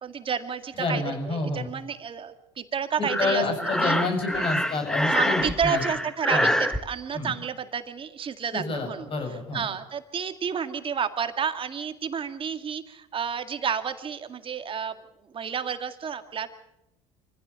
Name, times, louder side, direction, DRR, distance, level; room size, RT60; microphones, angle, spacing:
voice 1, 0.0-3.4 3.8-4.0 5.0-14.9 15.3-16.5, right 7 dB, 40° right, 9 dB, 2.0 m, -31 dB
voice 2, 0.8-1.7 3.0-5.8 6.3-6.5 7.1-7.3 8.5-9.6, left 3 dB, 40° left, 4 dB, 6.6 m, -28 dB
Breathing, 3.1-6.8, equal, 5° left, 1.5 m, -26 dB
25.0 x 15.5 x 7.0 m, 0.88 s
supercardioid pair, 80°, 14 cm